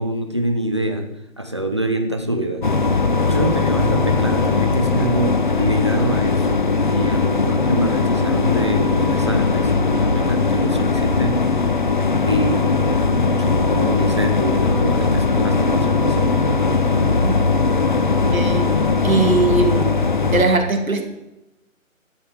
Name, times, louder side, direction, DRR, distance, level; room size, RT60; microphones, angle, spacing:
voice 1, 0.0-2.7 3.3-6.6 6.9-12.0 12.3-13.0 13.4-16.3, right 1 dB, 20° right, 6 dB, 0.7 m, -25 dB
sound 1, 2.6-20.4, left 4 dB, 35° left, 0.8 m, -19 dB
sound 2, 3.6-20.1, left 1 dB, 5° left, 1.9 m, -34 dB
voice 2, 18.3-20.0 20.3-21.0, right 3 dB, 85° right, 5 dB, 2.5 m, -20 dB
12.5 x 7.1 x 7.3 m, 0.93 s
figure-of-eight pair, 170°, 40 cm